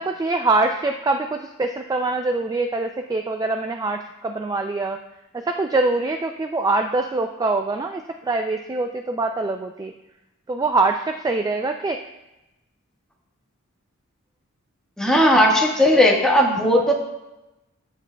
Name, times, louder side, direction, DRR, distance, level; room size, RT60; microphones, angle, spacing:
voice 1, 0.0-5.0 5.3-9.9 10.5-12.0, right 3 dB, 15° right, 5 dB, 0.3 m, -24 dB
voice 2, 15.0-16.9, equal, 5° left, -2 dB, 1.4 m, -16 dB
14.0 x 7.3 x 2.3 m, 0.97 s
head